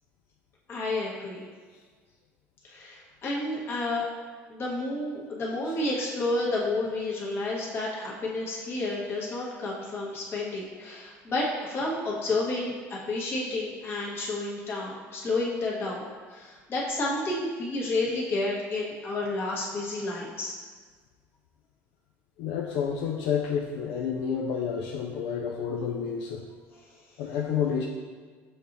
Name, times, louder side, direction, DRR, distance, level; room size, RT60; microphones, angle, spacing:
voice 1, 0.7-1.5 2.6-4.1 4.5-20.6 26.7-26.8, left 2 dB, 40° left, -4 dB, 1.2 m, -30 dB
voice 2, 22.4-26.4 27.2-27.9, left 7 dB, 80° left, 0 dB, 0.4 m, -29 dB
6.5 x 2.9 x 2.6 m, 1.5 s
supercardioid pair, 105°, 6 cm